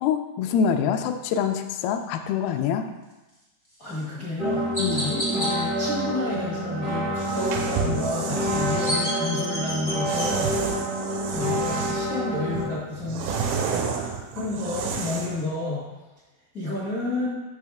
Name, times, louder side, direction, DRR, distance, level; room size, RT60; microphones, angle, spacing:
voice 1, 0.0-2.9 4.8-5.1, left 7 dB, 80° left, 6 dB, 2.3 m, -25 dB
voice 2, 3.8-4.6 4.9-10.5 11.1-15.8 16.5-17.3, left 2 dB, 55° left, -9 dB, 0.9 m, -31 dB
Chirp tweet, 3.8-4.0 4.7-5.5 8.4-10.3, equal, 20° left, 0.6 m, -30 dB
sound 1, 4.4-12.8, equal, 25° right, 0.7 m, -28 dB
sound 2, 7.1-9.0 10.0-12.1 12.5-15.4, right 6 dB, 80° right, 2.4 m, -30 dB
6.5 x 6.2 x 3.5 m, 1.1 s
omnidirectional pair, 4.7 m